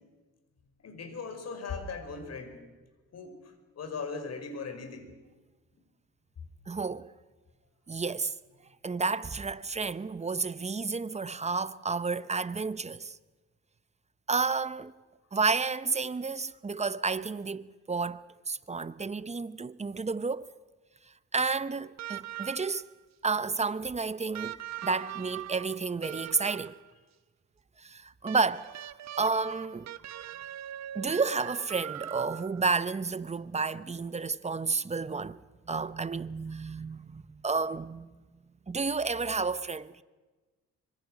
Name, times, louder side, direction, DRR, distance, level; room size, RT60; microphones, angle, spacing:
voice 1, 0.8-2.6 3.1-5.1 6.4-6.5, left 4 dB, 55° left, 5.2 m, -39 dB
voice 2, 6.7-7.1 7.9-8.3 8.8-13.2 14.3-14.9 15.3-20.5 21.3-22.8 23.2-26.8 27.8-29.9 30.9-35.4 35.7-38.1 38.7-40.0, right 4 dB, 20° right, 0.8 m, -31 dB
sound 1, 22.0-22.9 24.3-26.9 28.3-32.7 34.1-34.2, right 12 dB, 60° right, 1.0 m, -41 dB
25.5 x 25.0 x 6.3 m
cardioid pair, 90°, 30 cm